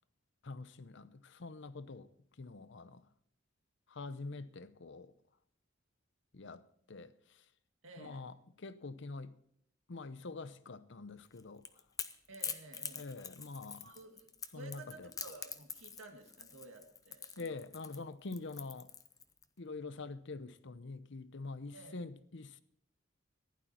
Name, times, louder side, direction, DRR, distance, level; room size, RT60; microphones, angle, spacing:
voice 1, 0.4-2.1 2.4-3.0 3.9-5.1 6.3-6.6 6.9-7.1 8.0-9.3 9.9-11.6 12.9-14.0 14.5-15.1 17.4-18.9 19.6-22.6, left 3 dB, 60° left, 0.8 m, -45 dB
voice 2, 7.8-8.2 12.3-13.1 13.8-17.6 21.7-22.0, right 2 dB, 75° right, 2.1 m, -53 dB
Crackle / Crack, 11.3-19.4, left 6 dB, 20° left, 0.7 m, -45 dB
15.5 x 11.5 x 4.4 m
head